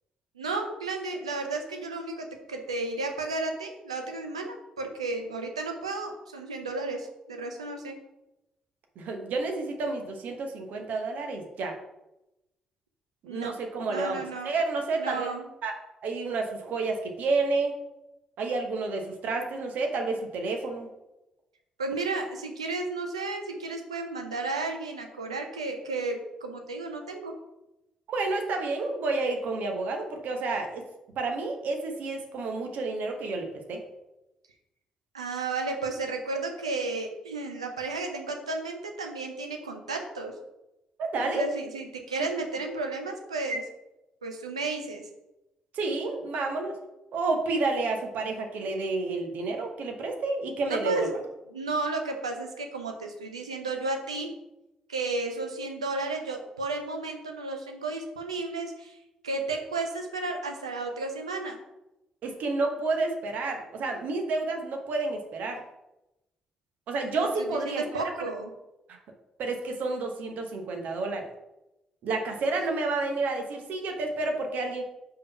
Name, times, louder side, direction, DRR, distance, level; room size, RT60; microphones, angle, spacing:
voice 1, 0.4-8.0 13.2-13.6 13.9-14.5 15.0-15.4 21.8-27.4 35.1-40.4 41.1-43.7 44.2-45.1 50.6-51.2 51.5-54.4 54.9-59.0 59.2-61.6 67.2-68.5, right 3 dB, 90° right, 4 dB, 0.6 m, -33 dB
voice 2, 9.0-11.7 13.3-15.3 15.6-15.7 16.0-17.7 18.4-20.9 28.1-30.8 31.2-33.8 41.0-41.5 45.7-46.8 47.1-51.1 62.2-65.6 66.9-68.0 69.4-71.3 72.0-74.8, right 3 dB, 60° right, 3 dB, 1.1 m, -30 dB
5.1 x 3.8 x 5.6 m, 0.94 s
figure-of-eight pair, 40°, 3 cm